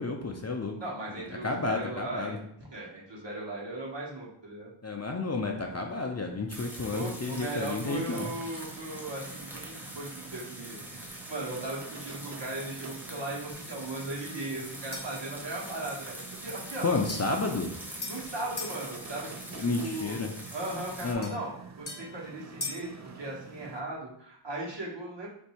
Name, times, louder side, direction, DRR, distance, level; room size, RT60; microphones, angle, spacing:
voice 1, 0.0-0.7 1.1-2.4 4.8-8.3 16.8-17.7 19.6-20.3 21.0-21.3, left 3 dB, 35° left, 2 dB, 0.4 m, -31 dB
voice 2, 0.8-2.4 2.7-4.7 6.9-11.0 11.3-16.9 18.1-20.2 20.5-21.5 21.8-22.9 23.1-25.3, right 2 dB, 60° right, -4 dB, 1.1 m, -37 dB
sound 1, 6.5-21.1, equal, 5° right, 0.7 m, -44 dB
sound 2, 7.2-23.8, right 5 dB, 40° right, 0.4 m, -48 dB
sound 3, 14.9-15.3 17.1-18.8 21.2-22.9, left 2 dB, 55° left, 0.8 m, -41 dB
2.7 x 2.6 x 4.3 m, 0.69 s
wide cardioid pair, 50°, 49 cm